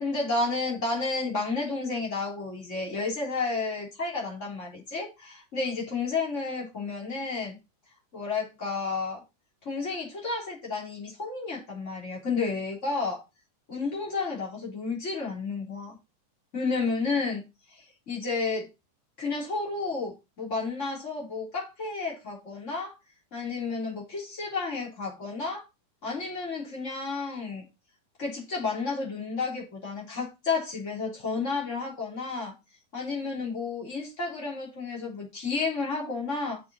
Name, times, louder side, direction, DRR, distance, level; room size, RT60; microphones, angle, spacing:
voice 1, 0.0-7.6 8.1-9.2 9.6-13.2 13.7-16.0 16.5-17.4 17.7-18.7 19.2-23.0 23.3-25.6 26.0-27.7 28.2-32.5 32.9-36.6, left 4 dB, 20° left, 3.6 m, -31 dB
7.7 x 6.8 x 4.3 m
omnidirectional pair, 3.9 m